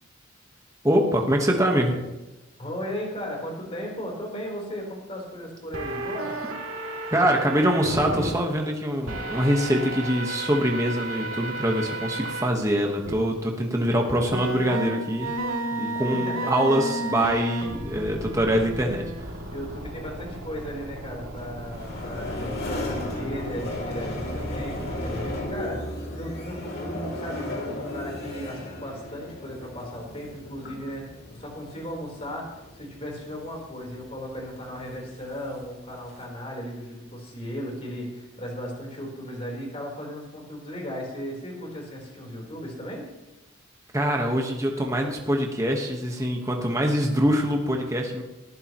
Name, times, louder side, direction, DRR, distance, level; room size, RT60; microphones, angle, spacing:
voice 1, 0.8-2.0 7.1-15.3 15.7-19.0 43.9-48.2, equal, 15° right, 1 dB, 1.3 m, -24 dB
voice 2, 2.6-6.3 16.3-16.5 19.5-43.1, equal, 30° left, -1 dB, 4.1 m, -36 dB
sound 1, 5.7-8.3 9.1-12.5 13.1-13.2 14.3-25.5, right 1 dB, 75° right, 2.8 m, -33 dB
sound 2, 21.4-36.3, left 1 dB, 45° left, 2.7 m, -36 dB
19.0 x 14.5 x 3.1 m, 1.0 s
head